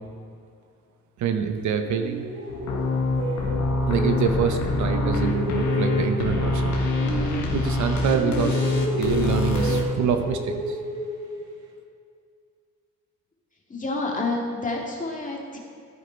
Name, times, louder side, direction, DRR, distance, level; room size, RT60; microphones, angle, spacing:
voice 1, 1.2-2.2 3.9-6.7 7.5-10.8, right 7 dB, 70° right, 7 dB, 0.9 m, -26 dB
sound 1, 1.8-4.6 4.9-7.9 8.1-11.6, right 1 dB, 90° right, 2.1 m, -31 dB
sound 2, 2.5-9.8, left 2 dB, 75° left, 1.6 m, -25 dB
voice 2, 13.7-15.6, left 2 dB, 25° left, -1 dB, 2.1 m, -28 dB
14.0 x 5.1 x 4.5 m, 2.3 s
cardioid pair, 90°, 30 cm